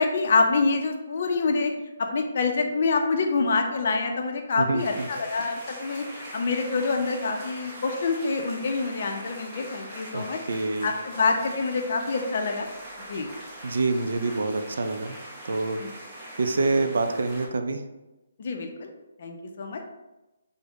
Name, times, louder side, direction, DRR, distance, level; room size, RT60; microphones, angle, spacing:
voice 1, 0.0-1.7 2.1-10.4 10.8-12.7 13.1-13.3 15.8-15.9 18.4-18.9 19.2-19.8, left 4 dB, 50° left, 4 dB, 0.5 m, -26 dB
voice 2, 4.6-5.1 10.1-10.9 13.6-15.2 15.4-15.8 16.4-17.8, right 3 dB, 70° right, 6 dB, 0.4 m, -26 dB
sound 1, 4.8-17.5, right 1 dB, 15° right, 0.7 m, -42 dB
3.4 x 2.1 x 3.5 m, 1.0 s
hypercardioid pair, 160°, 0 cm